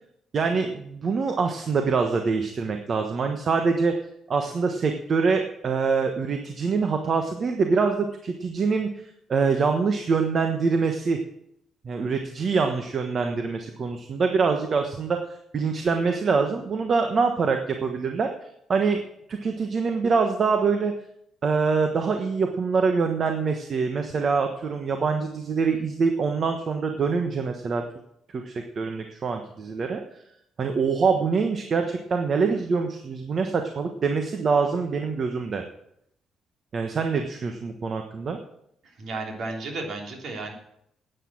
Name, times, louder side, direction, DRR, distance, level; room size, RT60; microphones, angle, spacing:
voice 1, 0.3-3.9 4.3-11.2 11.8-19.0 19.3-20.9 21.4-27.8 28.3-30.2 30.6-35.6 36.7-38.4, right 5 dB, 50° right, 5 dB, 1.2 m, -25 dB
voice 2, 38.8-40.5, right 3 dB, 65° right, 2 dB, 3.2 m, -33 dB
10.0 x 9.3 x 7.6 m, 0.75 s
cardioid pair, 90°, 0 cm